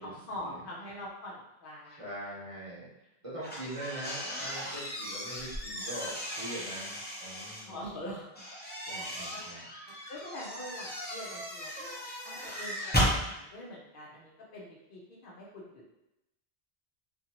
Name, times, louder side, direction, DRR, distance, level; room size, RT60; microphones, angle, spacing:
voice 1, 0.0-2.1 7.7-8.4 8.9-9.4 10.1-12.0 12.2-15.7, left 1 dB, 60° left, -4 dB, 0.8 m, -44 dB
voice 2, 1.9-2.9 3.2-7.9 8.9-9.7, right 1 dB, 35° right, -8 dB, 1.0 m, -42 dB
sound 1, 3.4-7.6 8.4-13.2, equal, 10° left, 0.6 m, -35 dB
2.6 x 2.5 x 2.8 m, 0.88 s
omnidirectional pair, 1.1 m